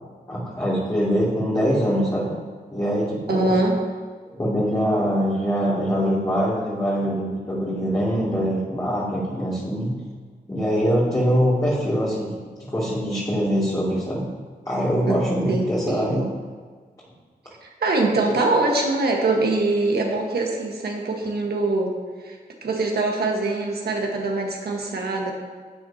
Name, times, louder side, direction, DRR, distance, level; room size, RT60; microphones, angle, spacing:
voice 1, 0.3-2.3 2.7-3.5 4.3-9.9 10.5-12.4 12.7-14.3 14.7-16.2 18.2-18.3, equal, 20° left, -8 dB, 2.6 m, -23 dB
voice 2, 3.3-3.8 15.1-15.2 15.5-16.1 17.6-25.3, right 2 dB, 75° right, 0 dB, 1.5 m, -23 dB
12.0 x 7.9 x 2.9 m, 1.5 s
cardioid pair, 65°, 16 cm